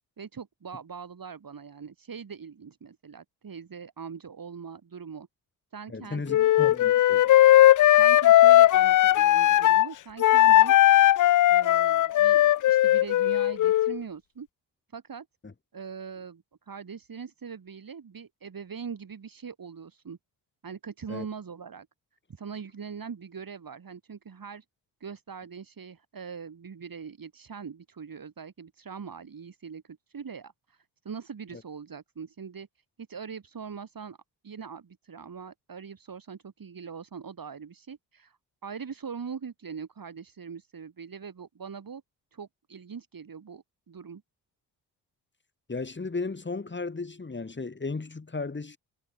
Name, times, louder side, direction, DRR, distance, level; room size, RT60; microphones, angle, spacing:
voice 1, 0.2-5.3 5.7-6.5 8.0-10.7 11.5-14.5 14.9-15.3 15.7-20.2 20.6-21.9 22.3-24.6 25.0-32.7 33.1-34.2 34.4-42.0 42.3-44.2, right 6 dB, 45° right, 4.7 m, -42 dB
voice 2, 5.9-7.4 15.4-15.5 21.1-21.3 31.5-31.6 45.7-48.8, left 3 dB, 20° left, 2.4 m, -35 dB
Wind instrument woodwind instrument, 6.3-9.9 10.2-14.0, left 13 dB, 40° left, 0.5 m, -18 dB
hypercardioid pair, 45°, 49 cm